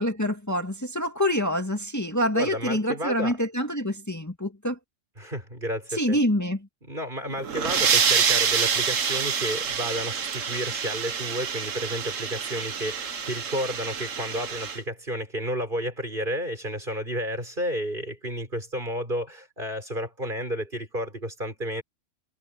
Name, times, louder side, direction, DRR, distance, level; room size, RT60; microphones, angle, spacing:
voice 1, 0.0-4.8 5.9-6.6, equal, 15° left, 2.4 m, -26 dB
voice 2, 2.3-3.4 5.2-6.2 6.8-21.8, equal, 40° right, 6.7 m, -31 dB
sound 1, 7.3-14.8, right 6 dB, 80° right, 1.6 m, -27 dB
omnidirectional pair, 1.3 m